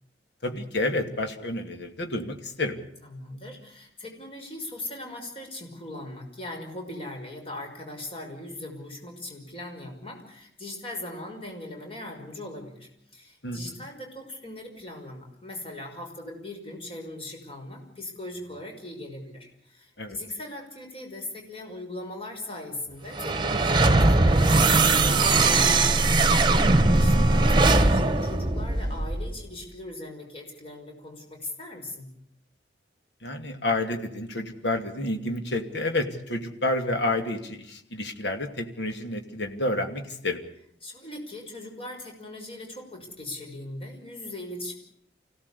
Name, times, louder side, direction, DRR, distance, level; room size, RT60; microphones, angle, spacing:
voice 1, 0.4-2.8 13.4-13.9 20.0-20.2 26.6-26.8 33.2-40.4, left 2 dB, 80° left, 5 dB, 2.7 m, -29 dB
voice 2, 3.0-32.1 40.8-44.7, left 1 dB, 30° left, 2 dB, 5.8 m, -39 dB
sound 1, 23.1-29.4, right 2 dB, 25° right, 1.5 m, -20 dB
25.5 x 17.0 x 8.5 m, 0.72 s
head